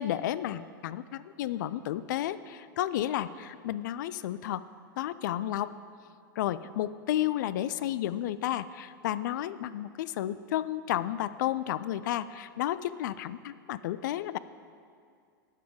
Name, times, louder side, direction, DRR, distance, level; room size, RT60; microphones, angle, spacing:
voice 1, 0.0-4.6 5.0-5.7 6.4-14.4, left 12 dB, 60° left, 15 dB, 0.3 m, -32 dB
9.2 x 7.2 x 5.1 m, 2.3 s
figure-of-eight pair, 95°, 12 cm